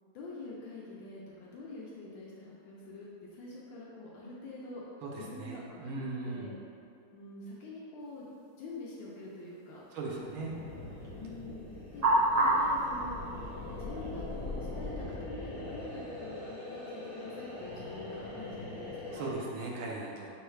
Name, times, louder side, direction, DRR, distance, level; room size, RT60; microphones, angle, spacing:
voice 1, 0.1-4.8 5.2-5.9 6.2-6.5 7.1-8.3 8.6-9.8 11.1-11.7 11.9-12.1 12.4-13.2 13.8-19.3, left 2 dB, 80° left, -5 dB, 1.3 m, -45 dB
voice 2, 5.0-6.5 9.9-10.6 19.1-20.3, right 3 dB, 85° right, -3 dB, 1.5 m, -38 dB
sound 1, 8.0-14.9, right 1 dB, 55° right, 0.9 m, -33 dB
sound 2, 10.0-19.3, left 2 dB, 40° left, 0.8 m, -42 dB
6.3 x 2.3 x 3.1 m, 2.6 s
omnidirectional pair, 2.2 m